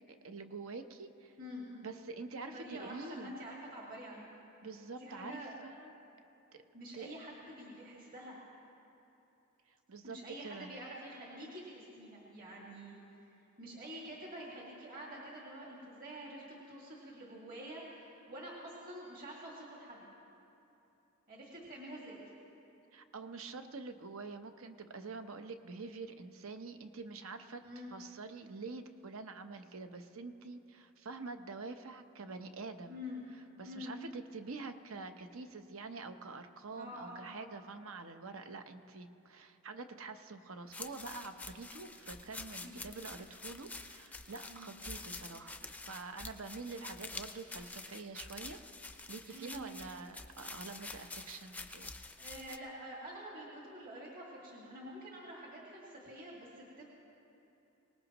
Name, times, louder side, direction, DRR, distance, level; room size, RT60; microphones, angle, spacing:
voice 1, 0.1-1.4 1.8-3.3 4.6-5.9 6.5-6.6 6.9-7.2 9.9-10.7 22.9-27.6 27.9-33.0 33.6-48.6 49.1-51.9, right 3 dB, 75° right, 8 dB, 0.8 m, -46 dB
voice 2, 1.4-1.8 2.5-4.2 5.0-5.6 6.7-8.4 10.0-13.0 13.6-20.0 21.3-22.2 27.6-27.9 32.9-33.3 33.6-33.9 36.7-37.3 42.6-42.7 44.4-44.7 49.3-49.6 51.0-51.1 52.2-56.8, equal, 45° right, -4 dB, 2.0 m, -47 dB
sound 1, 40.7-52.6, left 3 dB, 5° left, 0.4 m, -47 dB
24.0 x 19.0 x 3.0 m, 2.9 s
head